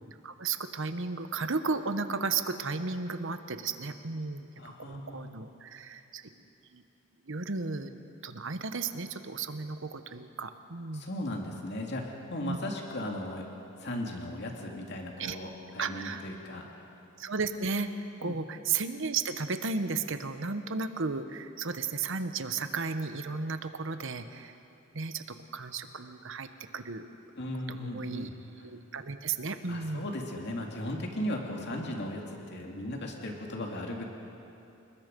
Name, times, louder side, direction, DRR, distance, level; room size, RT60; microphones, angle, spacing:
voice 1, 0.1-4.5 4.9-6.3 6.7-6.8 7.2-8.0 8.2-11.1 12.4-12.6 15.2-15.4 15.8-16.2 17.2-17.9 18.2-24.5 24.9-27.1 27.7-28.3 28.6-30.1, right 4 dB, 65° right, 9 dB, 1.1 m, -34 dB
voice 2, 4.6-5.3 10.9-13.5 13.8-16.7 18.2-18.4 27.4-28.3 29.7-34.0, left 1 dB, 55° left, 1 dB, 2.5 m, -37 dB
29.0 x 20.0 x 5.3 m, 2.8 s
head